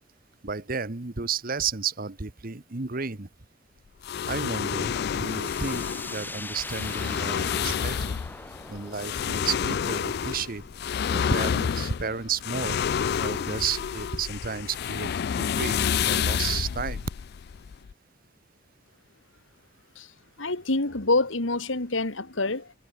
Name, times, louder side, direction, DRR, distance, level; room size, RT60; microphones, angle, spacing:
voice 1, 0.4-3.3 4.2-8.2 8.7-10.6 11.1-12.8 13.2-17.1, right 5 dB, 45° right, 1.2 m, -32 dB
sound 1, 4.0-17.9, left 7 dB, 55° left, 0.4 m, -29 dB
sound 2, 5.0-12.6, left 2 dB, 10° left, 5.1 m, -42 dB
voice 2, 20.4-22.8, left 2 dB, 75° left, 2.3 m, -26 dB
head